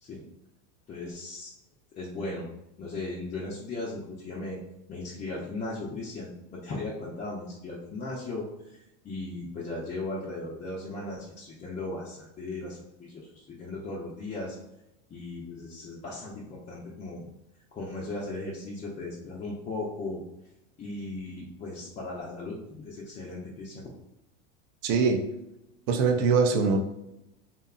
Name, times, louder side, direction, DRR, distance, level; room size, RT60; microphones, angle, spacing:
voice 1, 0.9-1.5 2.0-2.5 2.8-4.6 4.9-14.6 15.1-17.3 17.7-20.2 20.8-23.9, left 2 dB, 20° left, -5 dB, 0.4 m, -37 dB
voice 2, 24.8-25.2 25.9-26.8, right 5 dB, 55° right, 5 dB, 0.5 m, -22 dB
2.7 x 2.2 x 2.3 m, 0.87 s
hypercardioid pair, 100°, 38 cm